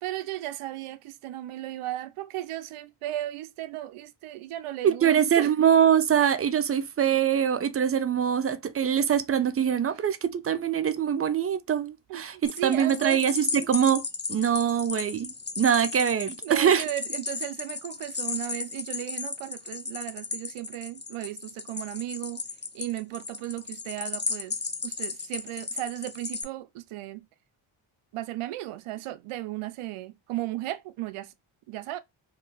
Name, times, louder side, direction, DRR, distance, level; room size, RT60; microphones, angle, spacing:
voice 1, 0.0-5.5 12.1-13.2 16.4-22.4 22.7-27.3 28.1-31.3 31.7-32.0, right 15 dB, 80° right, 0.6 m, -35 dB
voice 2, 4.8-16.8, right 8 dB, 30° right, 0.4 m, -24 dB
sound 1, 12.4-26.4, left 4 dB, 20° left, 0.5 m, -35 dB
2.6 x 2.3 x 3.8 m
cardioid pair, 65°, 50 cm